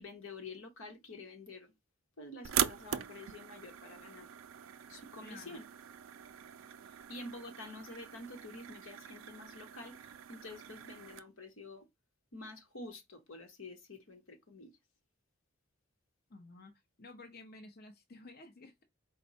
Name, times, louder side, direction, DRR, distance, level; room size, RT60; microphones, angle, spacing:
voice 1, 0.0-1.7 2.2-4.3 4.9-5.7 7.1-11.9 12.3-14.7, left 2 dB, 85° left, 1.1 m, -48 dB
sound 1, 2.4-11.2, right 10 dB, 70° right, 0.4 m, -41 dB
voice 2, 5.2-5.6 16.3-16.7 17.0-18.8, left 2 dB, 50° left, 0.7 m, -52 dB
4.3 x 2.2 x 4.1 m
head